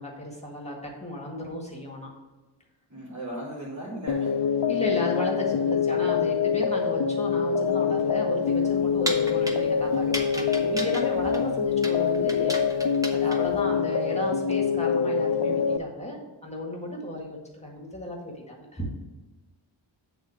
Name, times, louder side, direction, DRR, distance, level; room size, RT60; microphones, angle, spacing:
voice 1, 0.0-2.1 4.6-18.9, left 1 dB, 15° left, -2 dB, 1.8 m, -34 dB
voice 2, 2.9-4.4, right 1 dB, 35° right, -7 dB, 2.8 m, -37 dB
sound 1, 4.1-15.8, left 6 dB, 60° left, 0.6 m, -25 dB
sound 2, 8.4-13.6, equal, 5° right, 1.0 m, -36 dB
8.2 x 3.9 x 6.3 m, 1.2 s
wide cardioid pair, 120°, 47 cm